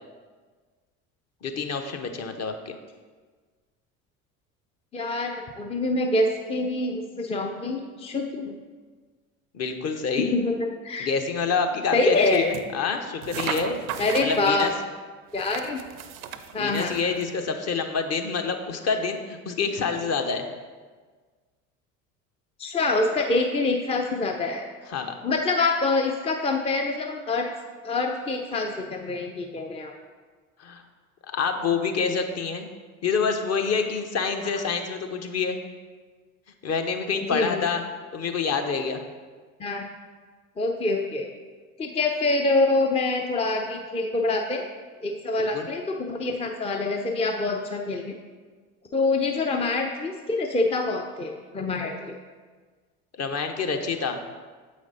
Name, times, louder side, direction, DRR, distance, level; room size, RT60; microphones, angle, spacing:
voice 1, 1.4-2.6 9.5-10.4 11.0-13.8 14.2-14.7 16.6-20.4 24.9-25.1 30.6-30.8 31.3-32.7 33.0-35.6 36.6-37.8 38.1-39.0 45.4-45.7 53.2-54.2, left 5 dB, 35° left, 5 dB, 0.9 m, -27 dB
voice 2, 4.9-8.5 10.2-10.5 10.8-11.1 11.9-12.4 14.0-14.7 15.3-15.8 16.5-16.9 22.6-24.7 25.2-27.5 27.8-29.9 37.3-37.6 39.6-39.9 40.6-41.3 41.8-44.7 45.0-48.1 48.9-52.2, left 2 dB, 15° left, 3 dB, 0.5 m, -25 dB
sound 1, 12.1-12.7 13.2-14.7 15.3-17.3, right 8 dB, 80° right, 0.6 m, -36 dB
7.3 x 5.1 x 4.0 m, 1.5 s
hypercardioid pair, 70°, 43 cm